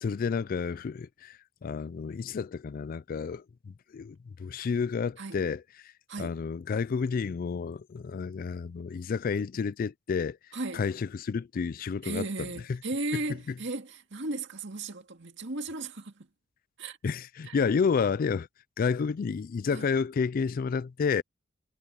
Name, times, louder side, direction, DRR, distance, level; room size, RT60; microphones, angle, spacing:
voice 1, 0.0-5.9 6.2-10.4 10.7-12.3 17.0-18.5 18.8-21.2, left 5 dB, 45° left, 0.3 m, -30 dB
voice 2, 10.5-10.8 12.0-16.3 16.8-17.0 17.4-17.6 19.7-19.9, right 2 dB, 65° right, 2.1 m, -36 dB
head